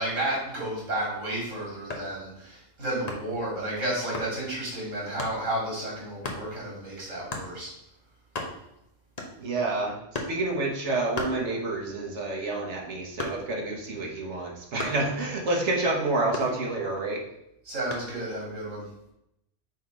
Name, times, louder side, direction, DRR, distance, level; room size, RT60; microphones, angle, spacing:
voice 1, 0.0-7.7 17.6-18.9, right 1 dB, 85° right, -4 dB, 3.1 m, -32 dB
sound 1, 1.9-2.2 3.1-3.4 4.1-4.4 5.2-5.4 6.2-6.5 7.3-7.5 8.0-8.1 8.2-8.8 9.2-9.6 10.1-10.4 11.1-11.9 12.3-13.7 14.8-15.1 16.3-17.0 17.9-18.2, left 2 dB, 35° left, 1.0 m, -35 dB
voice 2, 9.4-17.3, right 2 dB, 65° right, 0 dB, 1.6 m, -29 dB
6.3 x 3.4 x 5.1 m, 0.81 s
omnidirectional pair, 1.3 m